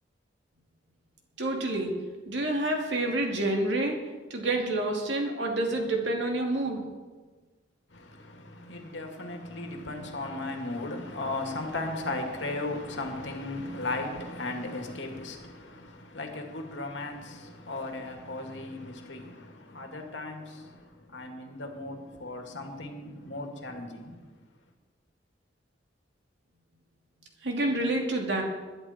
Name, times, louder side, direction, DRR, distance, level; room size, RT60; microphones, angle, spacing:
voice 1, 1.4-2.0 2.3-4.0 4.3-6.8 27.4-28.4, right 2 dB, 70° right, 2.8 m, -28 dB
voice 2, 7.9-24.2, left 2 dB, 80° left, 2.3 m, -36 dB
21.0 x 11.0 x 4.4 m
head